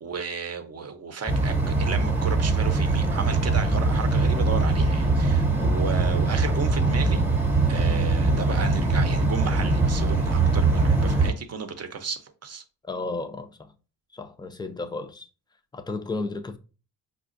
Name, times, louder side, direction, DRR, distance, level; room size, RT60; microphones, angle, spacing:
voice 1, 0.0-7.3 7.7-12.6, right 5 dB, 40° right, 0.7 m, -34 dB
sound 1, 1.3-11.3, right 3 dB, 5° right, 0.9 m, -22 dB
voice 2, 12.9-13.7 14.1-15.3 15.7-16.6, left 3 dB, 10° left, 0.4 m, -33 dB
5.0 x 2.3 x 2.5 m
cardioid pair, 80°, 41 cm